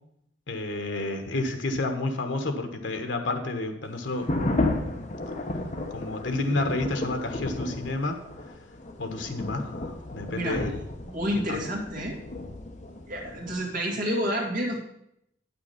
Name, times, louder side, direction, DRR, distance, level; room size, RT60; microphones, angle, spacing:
voice 1, 0.5-4.3 5.9-8.2 9.0-10.7 11.3-11.7, left 2 dB, 85° left, 6 dB, 1.3 m, -30 dB
sound 1, 4.1-13.5, left 2 dB, 40° left, 1.1 m, -33 dB
voice 2, 10.3-12.2 13.1-14.8, equal, 45° right, 0 dB, 2.2 m, -30 dB
9.4 x 6.0 x 5.8 m, 0.76 s
head